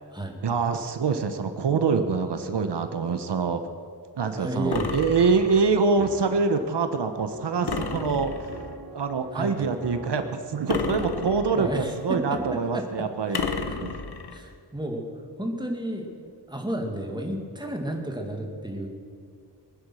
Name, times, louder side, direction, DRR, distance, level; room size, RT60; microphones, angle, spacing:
voice 1, 0.4-3.6 4.2-8.3 8.9-13.4 13.8-13.9, right 5 dB, 80° right, 8 dB, 1.0 m, -25 dB
voice 2, 4.3-5.0 7.6-7.7 9.3-9.7 11.5-13.8 14.3-15.1 15.4-18.9, right 1 dB, 10° right, 1 dB, 2.2 m, -32 dB
sound 1, 4.7-5.8 7.7-8.7 10.7-11.8 13.3-14.4, left 5 dB, 70° left, 1.3 m, -32 dB
sound 2, 5.1-12.8, right 2 dB, 65° right, 3.3 m, -44 dB
22.0 x 9.8 x 6.3 m, 2.3 s
wide cardioid pair, 125°, 41 cm